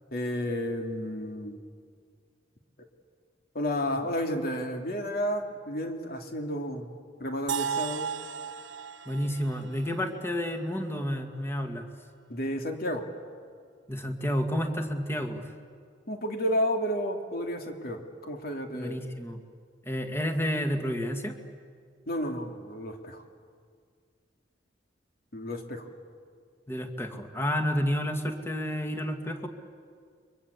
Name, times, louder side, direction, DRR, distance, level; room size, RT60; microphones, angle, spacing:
voice 1, 0.1-1.6 3.5-6.9 7.2-8.1 12.3-13.1 16.1-19.0 22.1-23.2 25.3-25.9, equal, 55° left, 4 dB, 2.9 m, -31 dB
sound 1, 7.5-11.4, right 7 dB, 85° right, 1.1 m, -36 dB
voice 2, 9.1-11.9 13.9-15.4 18.7-19.4 19.8-21.4 26.7-29.5, equal, 15° left, 5 dB, 2.1 m, -30 dB
30.0 x 23.5 x 8.4 m, 2.1 s
head